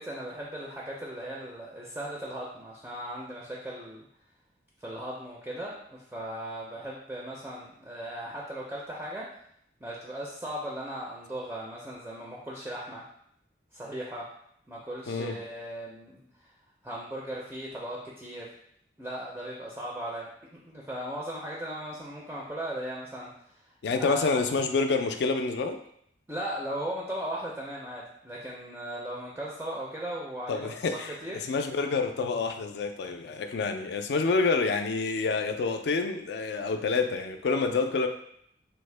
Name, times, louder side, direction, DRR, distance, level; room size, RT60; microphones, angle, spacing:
voice 1, 0.0-4.1 4.8-9.3 9.8-13.0 13.7-14.2 14.7-16.2 16.8-18.5 19.0-23.3 23.9-24.3 26.3-31.4, right 1 dB, 10° right, -4 dB, 0.4 m, -37 dB
voice 2, 15.1-15.4 23.8-25.8 30.5-31.1 31.5-38.1, left 4 dB, 60° left, 6 dB, 0.3 m, -28 dB
3.4 x 2.1 x 3.2 m, 0.69 s
head